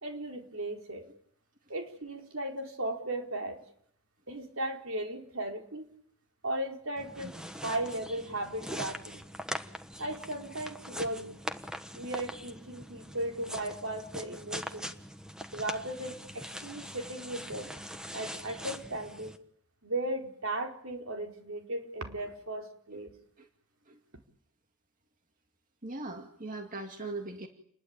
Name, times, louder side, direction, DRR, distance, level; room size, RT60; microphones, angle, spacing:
voice 1, 0.0-1.1 1.7-3.6 4.3-5.9 6.4-7.3 7.6-9.2 10.0-11.4 11.9-14.9 15.5-17.7 18.1-19.4 19.8-23.1, right 1 dB, 65° right, 3 dB, 4.5 m, -36 dB
sound 1, 7.0-19.4, equal, 5° right, 1.3 m, -42 dB
voice 2, 25.8-27.5, right 2 dB, 35° right, 4 dB, 2.3 m, -40 dB
29.5 x 21.0 x 8.9 m, 0.67 s
head